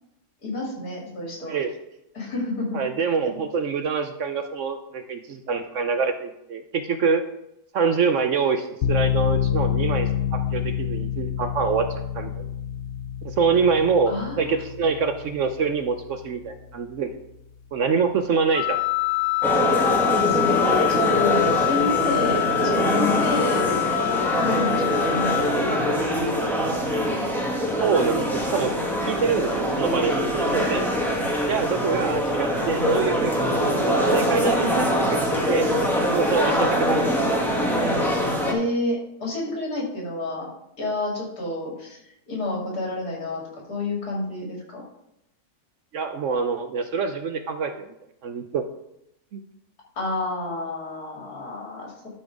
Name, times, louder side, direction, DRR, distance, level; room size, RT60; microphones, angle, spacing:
voice 1, 0.4-1.6 2.1-2.8 14.1-14.6 20.3-23.7 24.3-26.3 38.5-40.5 40.8-44.8 50.0-52.1, left 2 dB, 75° left, -2 dB, 3.1 m, -30 dB
voice 2, 2.7-7.2 7.7-11.9 12.1-12.5 13.2-17.1 17.7-18.8 27.8-28.2 28.5-28.7 29.0-30.9 31.5-35.7 36.1-37.0 45.9-47.9 48.2-48.6 49.3-49.4, right 5 dB, 60° right, 8 dB, 0.9 m, -25 dB
sound 1, 8.8-17.7, left 10 dB, 55° left, 0.8 m, -28 dB
Wind instrument woodwind instrument, 18.5-25.5, left 22 dB, 40° left, 1.3 m, -25 dB
sound 2, 19.4-38.5, equal, ahead, 1.4 m, -23 dB
11.5 x 4.3 x 4.8 m, 0.83 s
omnidirectional pair, 1.7 m